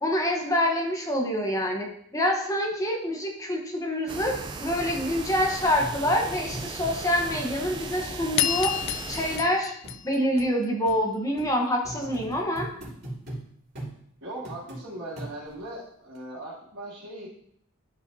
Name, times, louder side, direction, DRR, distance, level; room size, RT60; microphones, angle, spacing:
voice 1, 0.0-4.3 4.6-8.7 9.1-9.7 10.0-12.7, equal, 15° left, 1 dB, 1.0 m, -26 dB
sound 1, 4.1-9.4, right 3 dB, 20° right, 0.4 m, -37 dB
sound 2, 4.3-4.4 4.8-4.9 5.3-5.4 5.8-6.9 7.3-7.5 7.8-7.9 8.3-8.4 8.8-9.0 9.3-9.5 9.8-10.0 10.4-10.5 10.9-11.0 11.4-11.5 11.8-13.4 13.8-13.9 14.5-14.8 15.2-15.6 16.2-16.3, right 1 dB, 50° right, 2.8 m, -39 dB
sound 3, 8.4-10.9, left 12 dB, 55° left, 0.3 m, -30 dB
voice 2, 14.2-17.3, right 1 dB, 75° right, -12 dB, 2.6 m, -39 dB
11.5 x 4.9 x 2.7 m, 0.67 s
head